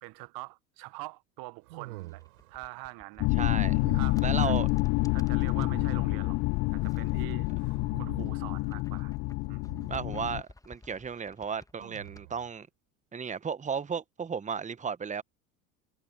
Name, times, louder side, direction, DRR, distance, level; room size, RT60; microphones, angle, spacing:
voice 1, 0.0-2.2 2.5-3.3 3.9-4.6 5.1-6.4 6.7-7.5 8.0-9.1 9.5-9.7, right 23 dB, 50° right, 1.0 m, -44 dB
sound 1, 1.6-2.6 3.7-4.4 5.6-6.4 7.6-8.6 9.7-10.2 11.8-12.5, right 19 dB, 70° right, 3.4 m, -46 dB
sound 2, 1.9-5.8 6.5-7.8 8.1-12.2, left 2 dB, 10° left, 1.4 m, -54 dB
sound 3, 3.2-10.4, left 25 dB, 40° left, 0.4 m, -28 dB
voice 2, 3.4-3.8 4.2-4.7 9.9-12.7 13.1-15.2, right 6 dB, 15° right, 1.2 m, -34 dB
hypercardioid pair, 75°, 45 cm